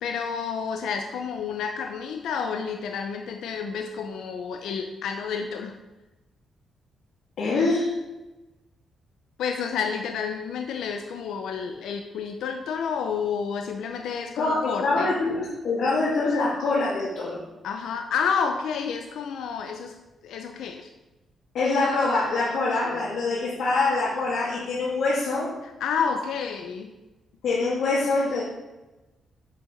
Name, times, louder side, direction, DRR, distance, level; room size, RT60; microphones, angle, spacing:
voice 1, 0.0-5.8 9.4-15.1 17.6-20.0 20.2-20.9 25.8-26.9, left 6 dB, 90° left, 5 dB, 0.7 m, -30 dB
voice 2, 7.4-8.0 14.4-17.4 21.5-25.5 27.4-28.4, left 3 dB, 70° left, -7 dB, 2.3 m, -24 dB
7.7 x 6.8 x 5.1 m, 1.1 s
cardioid pair, 145°, 0 cm